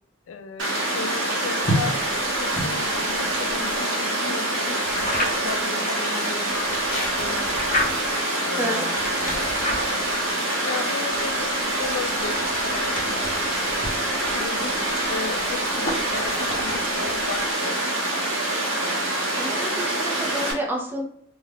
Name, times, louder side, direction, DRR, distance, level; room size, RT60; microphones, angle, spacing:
voice 1, 0.3-2.0 2.4-7.8 8.4-9.8 10.6-13.3 14.3-17.8, left 5 dB, 90° left, 7 dB, 0.4 m, -35 dB
Water, 0.6-20.5, right 1 dB, 70° right, 0.8 m, -25 dB
sound 1, 1.6-3.8 4.8-5.6 6.5-8.2 8.9-10.3 11.1-17.5, equal, 40° left, 0.8 m, -32 dB
voice 2, 8.5-8.8 19.4-21.1, right 1 dB, 10° right, -2 dB, 0.5 m, -29 dB
2.4 x 2.3 x 3.3 m, 0.62 s
head